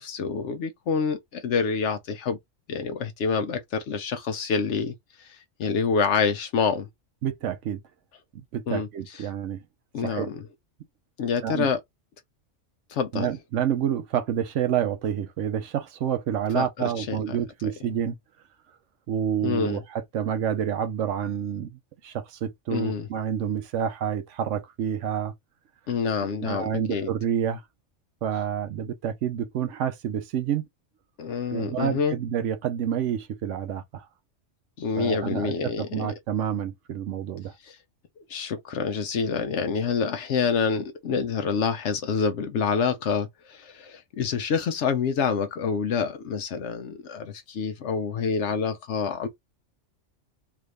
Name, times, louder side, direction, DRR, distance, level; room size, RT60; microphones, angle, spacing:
voice 1, 0.0-2.4 2.7-6.9 8.7-8.9 9.9-10.4 11.2-11.8 12.9-13.3 16.5-16.6 17.0-17.4 19.4-19.8 22.7-23.1 25.9-27.1 31.2-32.2 34.8-36.1 37.6-37.8 38.3-49.3, left 5 dB, 75° left, 0.9 m, -27 dB
voice 2, 7.2-7.8 8.3-9.6 10.0-10.3 11.4-11.7 13.1-18.2 19.1-25.3 26.2-27.6 28.2-30.6 31.5-34.1 35.0-37.5, right 9 dB, 80° right, 1.0 m, -28 dB
3.5 x 2.5 x 3.2 m
omnidirectional pair, 1.3 m